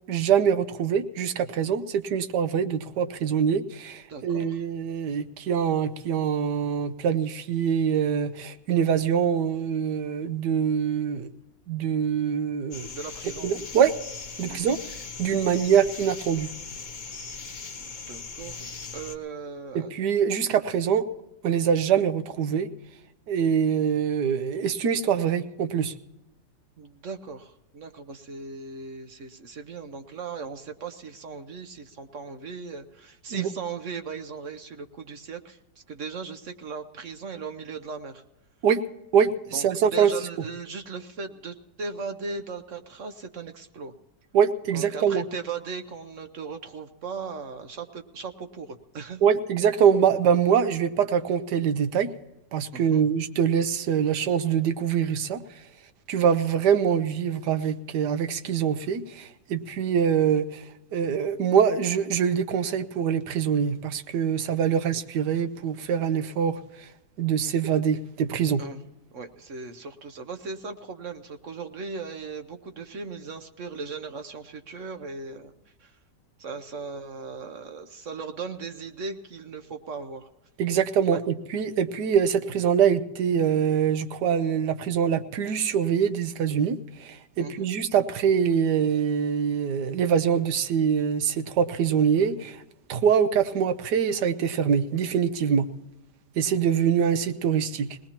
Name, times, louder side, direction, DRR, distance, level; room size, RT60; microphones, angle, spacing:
voice 1, 0.1-11.3 11.7-12.9 13.4-13.9 14.4-14.8 15.2-16.5 19.7-21.1 21.4-22.7 23.3-25.9 33.3-33.5 38.6-38.8 39.1-40.1 44.3-45.2 49.2-52.1 52.5-55.4 56.1-60.6 60.9-66.6 67.2-68.6 80.6-92.6 92.9-95.7 96.4-97.9, right 7 dB, 75° right, 11 dB, 1.4 m, -24 dB
voice 2, 4.1-4.6 12.9-13.5 14.5-14.7 17.8-18.6 18.9-19.9 26.8-35.6 35.9-38.2 39.5-43.9 44.7-49.2 52.7-53.0 68.6-68.8 69.1-75.5 75.8-76.0 76.4-80.3 81.1-81.2 87.4-87.7, right 4 dB, 55° right, 8 dB, 1.0 m, -38 dB
sound 1, 12.7-19.2, left 4 dB, 35° left, 0.8 m, -39 dB
22.0 x 19.0 x 2.9 m, 0.96 s
omnidirectional pair, 1.8 m